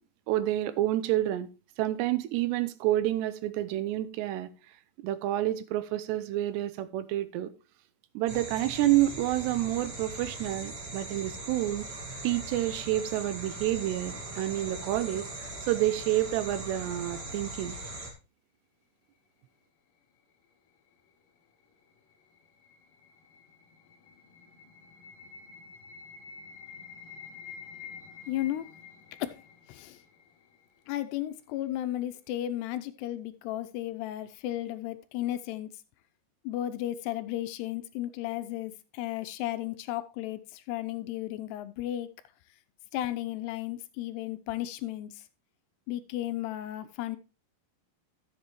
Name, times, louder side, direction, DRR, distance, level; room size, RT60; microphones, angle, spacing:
voice 1, 0.3-1.5 1.8-4.5 5.0-7.5 8.2-11.9 12.2-17.8, right 14 dB, 85° right, 2.8 m, -29 dB
sound 1, 8.3-18.1, right 2 dB, 45° right, 1.3 m, -40 dB
sound 2, 21.9-30.9, left 6 dB, 65° left, 2.5 m, -49 dB
voice 2, 28.3-28.7 29.2-29.4 29.7-30.0 30.9-35.7 36.4-42.1 42.9-45.2 45.9-47.2, left 14 dB, 80° left, 2.6 m, -34 dB
12.5 x 7.8 x 3.0 m
omnidirectional pair, 5.0 m